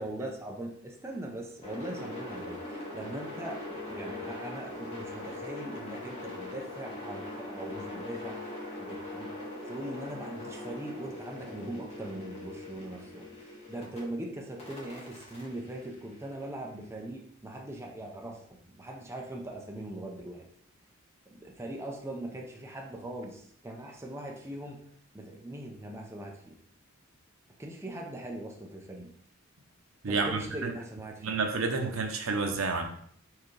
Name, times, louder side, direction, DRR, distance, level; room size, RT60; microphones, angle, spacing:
voice 1, 0.0-8.5 8.8-9.3 9.7-20.5 21.3-24.8 25.1-26.6 27.6-29.1 30.1-31.3, right 1 dB, 15° right, 0 dB, 0.6 m, -41 dB
sound 1, 1.6-14.0 14.6-16.7, left 2 dB, 30° left, 1.5 m, -41 dB
voice 2, 30.0-30.7 31.2-32.8, right 4 dB, 75° right, 4 dB, 0.7 m, -30 dB
4.6 x 3.6 x 3.2 m, 0.64 s
head